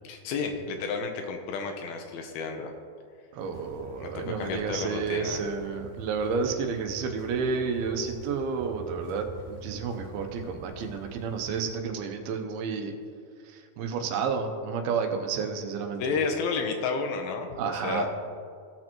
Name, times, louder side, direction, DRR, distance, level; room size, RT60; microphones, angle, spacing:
voice 1, 0.0-2.7 4.0-5.4 16.0-18.1, left 4 dB, 80° left, 4 dB, 2.5 m, -31 dB
voice 2, 3.3-12.9 13.5-16.2 17.6-18.1, right 5 dB, 80° right, 4 dB, 2.6 m, -31 dB
sound 1, 3.4-11.7, right 3 dB, 50° left, 1.8 m, -45 dB
17.5 x 6.4 x 3.0 m, 2.2 s
omnidirectional pair, 4.4 m